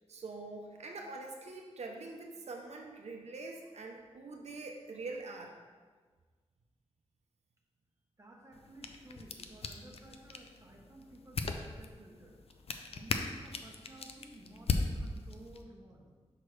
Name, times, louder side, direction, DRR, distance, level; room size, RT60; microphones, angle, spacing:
voice 1, 0.1-5.5, right 3 dB, 80° right, 1 dB, 0.6 m, -44 dB
voice 2, 8.2-12.4 12.9-16.1, right 2 dB, 25° right, -1 dB, 1.0 m, -54 dB
sound 1, 8.5-15.6, left 4 dB, 65° left, 0.5 m, -39 dB
6.1 x 5.7 x 3.2 m, 1.5 s
wide cardioid pair, 105°, 11 cm